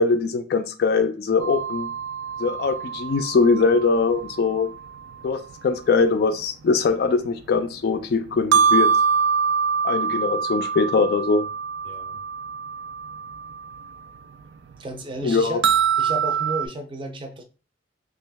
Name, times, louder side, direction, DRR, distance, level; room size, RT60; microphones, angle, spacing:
voice 1, 0.0-1.9 2.4-4.7 5.2-8.9 9.8-11.5 15.2-15.6, left 4 dB, 55° left, 8 dB, 0.3 m, -21 dB
sound 1, 1.4-5.1 6.0-6.1 8.3-13.9 14.2-14.3 14.7-14.8 15.6-16.7, right 6 dB, 90° right, 0.3 m, -24 dB
voice 2, 11.8-12.2 14.8-15.6 16.0-17.4, right 2 dB, 25° right, 5 dB, 0.5 m, -33 dB
2.9 x 2.4 x 3.4 m, 0.36 s
head